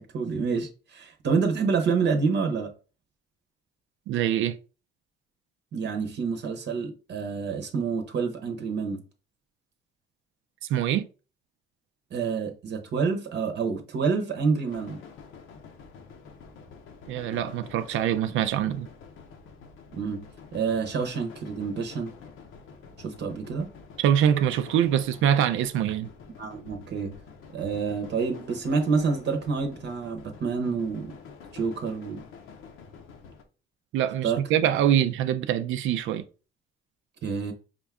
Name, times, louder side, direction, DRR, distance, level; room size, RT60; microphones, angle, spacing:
voice 1, 0.0-2.7 5.7-9.0 12.1-15.0 19.9-20.2 20.5-22.1 23.0-23.7 26.4-27.1 27.5-31.1 31.5-32.2 34.2-34.4 37.2-37.5, right 5 dB, 60° right, 0.8 m, -28 dB
voice 2, 4.1-4.6 10.7-11.1 17.1-18.9 24.0-26.1 33.9-36.2, right 10 dB, 80° right, 0.4 m, -24 dB
sound 1, 14.7-33.4, left 5 dB, 85° left, 0.8 m, -48 dB
5.1 x 2.4 x 3.4 m
cardioid pair, 90°, 20 cm